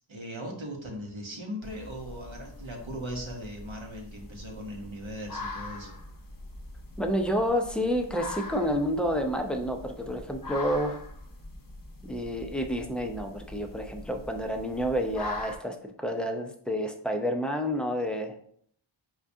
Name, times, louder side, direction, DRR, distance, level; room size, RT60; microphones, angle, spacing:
voice 1, 0.1-6.0, equal, 70° right, 0 dB, 0.9 m, -39 dB
sound 1, 1.6-15.6, left 2 dB, 45° left, 0.6 m, -42 dB
voice 2, 7.0-11.0 12.0-18.3, equal, ahead, 4 dB, 0.4 m, -29 dB
4.5 x 2.4 x 2.6 m, 0.63 s
wide cardioid pair, 45°, 49 cm